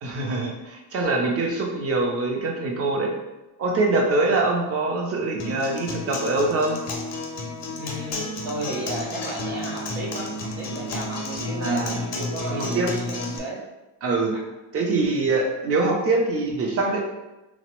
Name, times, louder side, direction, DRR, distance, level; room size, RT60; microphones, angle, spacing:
voice 1, 0.0-3.1 3.6-6.8 11.6-12.0 12.5-12.9 14.0-14.3 14.7-17.0, right 3 dB, 30° right, 1 dB, 0.4 m, -24 dB
Acoustic guitar, 5.4-13.4, left 2 dB, 35° left, 0.4 m, -31 dB
voice 2, 7.8-10.3 10.6-13.6, right 2 dB, 75° right, -5 dB, 0.7 m, -34 dB
3.4 x 2.0 x 2.9 m, 1.0 s
cardioid pair, 155°, 47 cm